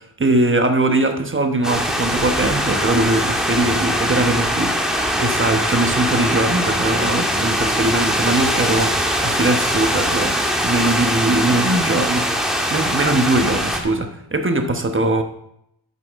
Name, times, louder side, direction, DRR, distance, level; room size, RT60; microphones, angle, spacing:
voice 1, 0.0-4.8 5.2-8.9 9.2-12.3 12.7-15.2, right 2 dB, 30° right, 5 dB, 1.1 m, -20 dB
sound 1, 1.6-13.8, equal, ahead, 1.8 m, -21 dB
11.5 x 8.5 x 3.6 m, 0.76 s
wide cardioid pair, 110°, 42 cm